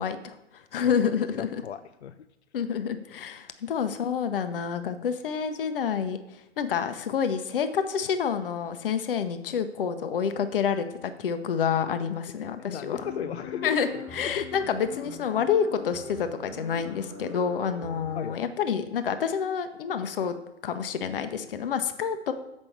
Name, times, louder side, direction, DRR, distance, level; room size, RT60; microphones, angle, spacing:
voice 1, 0.0-1.5 2.5-6.2 6.6-13.0 13.6-20.3 20.6-22.3, left 7 dB, 50° left, 10 dB, 0.9 m, -28 dB
voice 2, 1.3-2.2 12.4-14.5 18.1-18.4, left 8 dB, 65° left, 10 dB, 0.5 m, -36 dB
sound 1, 12.9-18.2, left 3 dB, 5° right, 1.6 m, -42 dB
7.3 x 5.3 x 7.1 m, 0.87 s
figure-of-eight pair, 120°, 35 cm